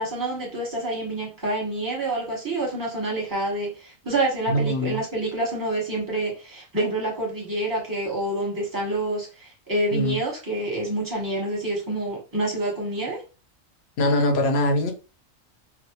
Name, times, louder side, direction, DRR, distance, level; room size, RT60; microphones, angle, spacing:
voice 1, 0.0-13.2, right 1 dB, 15° right, 0.9 m, -27 dB
voice 2, 4.5-5.0 9.9-10.2 14.0-14.9, left 1 dB, 60° left, 0.8 m, -22 dB
2.5 x 2.1 x 2.8 m
omnidirectional pair, 1.4 m